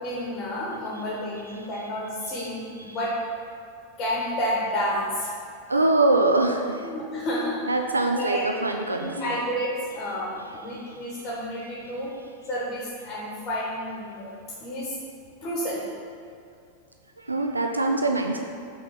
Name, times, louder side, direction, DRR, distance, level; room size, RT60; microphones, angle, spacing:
voice 1, 0.0-3.2 4.0-5.4 6.8-7.7 8.1-8.4 9.0-12.1 12.5-14.3 14.6-15.0 15.4-15.8, equal, 30° left, -5 dB, 1.0 m, -30 dB
voice 2, 5.7-6.9 7.7-9.4 10.7-11.1 17.2-18.4, right 2 dB, 80° right, 4 dB, 0.4 m, -24 dB
6.1 x 3.5 x 5.4 m, 2.4 s
figure-of-eight pair, 90°, 0 cm